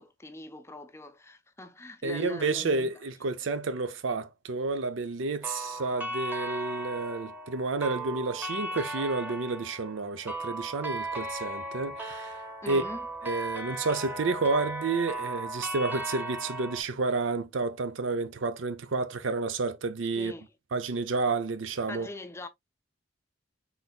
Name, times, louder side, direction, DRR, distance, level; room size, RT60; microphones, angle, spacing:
voice 1, 0.0-2.9 12.6-13.1 20.1-20.5 21.9-22.5, left 1 dB, 15° left, 0.5 m, -41 dB
voice 2, 2.0-12.4 12.7-12.8 13.2-20.3 20.7-22.1, right 3 dB, 80° right, 0.6 m, -30 dB
sound 1, 5.4-16.8, right 1 dB, 10° right, 1.0 m, -36 dB
4.0 x 3.9 x 2.3 m
head